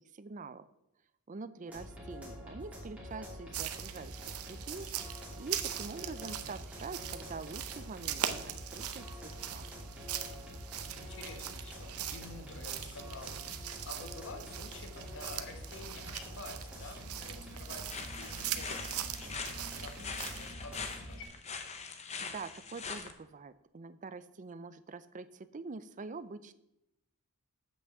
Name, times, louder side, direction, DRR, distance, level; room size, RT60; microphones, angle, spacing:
voice 1, 0.1-0.6 1.3-4.9 5.4-9.7 22.2-26.5, right 4 dB, 35° right, 13 dB, 0.5 m, -45 dB
sound 1, 1.7-21.2, equal, 5° right, 2.8 m, -47 dB
sound 2, 3.5-20.5, right 10 dB, 75° right, 0.7 m, -41 dB
voice 2, 10.9-21.3, left 3 dB, 60° left, 5 dB, 1.4 m, -49 dB
sound 3, 17.9-23.1, left 5 dB, 30° left, 0.8 m, -42 dB
7.9 x 6.0 x 7.2 m, 0.85 s
head